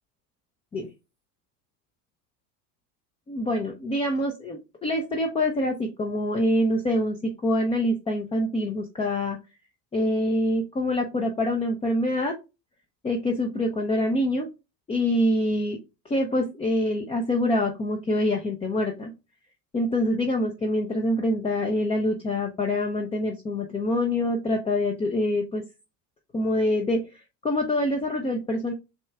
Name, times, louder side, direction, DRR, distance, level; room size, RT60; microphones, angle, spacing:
voice 1, 3.3-9.4 9.9-12.3 13.0-14.5 14.9-15.8 16.1-19.1 19.7-25.6 26.3-28.7, left 1 dB, 15° left, 2 dB, 0.5 m, -25 dB
6.4 x 2.3 x 2.3 m, 0.27 s
hypercardioid pair, 80°, 48 cm